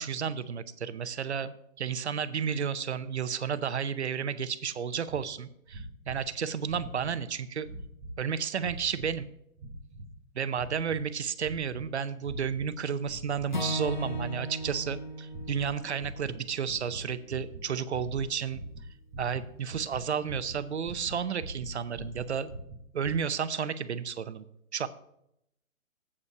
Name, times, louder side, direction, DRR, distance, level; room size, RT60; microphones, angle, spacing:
voice 1, 0.0-7.7 8.2-9.3 10.3-18.6 19.2-22.5 22.9-24.4 24.7-24.9, right 7 dB, 55° right, 13 dB, 0.7 m, -32 dB
sound 1, 5.1-5.2 5.7-6.3 6.6-7.2 7.6-8.2 8.6-9.2 9.6-10.2 10.5-11.0 11.4-11.9 12.2-12.7 13.0-13.5 13.8-14.3 14.6-15.0 15.3-15.7 16.0-23.1, right 1 dB, 20° right, 1.9 m, -43 dB
Acoustic guitar / Strum, 13.5-17.8, equal, 35° left, 0.4 m, -37 dB
8.2 x 5.5 x 7.0 m, 0.76 s
hypercardioid pair, 170°, 41 cm